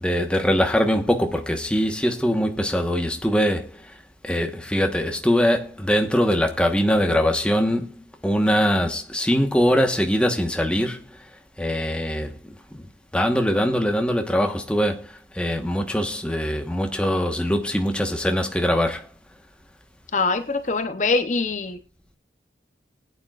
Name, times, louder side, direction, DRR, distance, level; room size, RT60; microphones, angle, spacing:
voice 1, 0.0-3.7 4.2-7.9 8.2-11.1 11.6-12.3 12.7-12.8 13.1-19.1, equal, 5° left, 1.2 m, -22 dB
voice 2, 20.1-21.8, left 3 dB, 40° left, 0.7 m, -23 dB
20.5 x 9.1 x 2.4 m
head